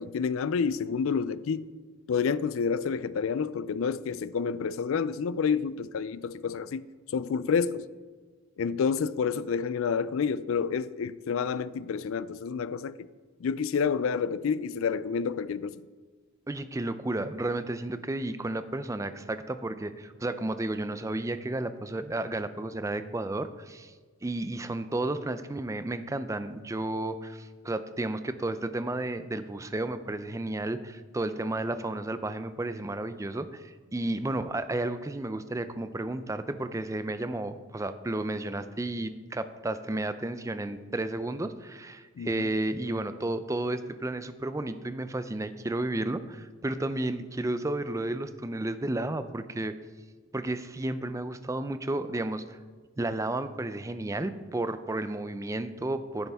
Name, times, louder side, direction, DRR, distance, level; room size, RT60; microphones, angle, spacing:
voice 1, 0.0-1.7 2.1-6.9 7.1-7.9 8.6-13.1 13.4-15.8 42.2-42.4, left 6 dB, 70° left, 0.4 m, -29 dB
voice 2, 16.5-23.9 24.2-49.7 50.3-52.6 53.0-56.3, right 2 dB, 15° right, 0.4 m, -32 dB
11.0 x 9.8 x 3.5 m
head